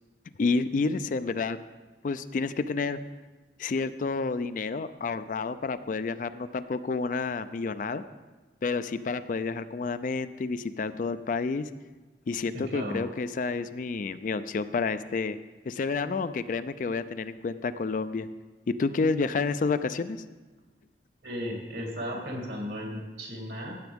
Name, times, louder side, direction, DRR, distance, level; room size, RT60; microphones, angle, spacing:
voice 1, 0.4-1.6 2.0-3.0 3.6-8.0 8.6-11.7 12.3-15.4 15.7-18.3 18.7-20.2, left 4 dB, 45° left, 12 dB, 0.3 m, -29 dB
voice 2, 12.5-13.0 21.2-23.8, equal, 70° right, 0 dB, 2.5 m, -35 dB
15.0 x 7.9 x 3.5 m, 1.3 s
head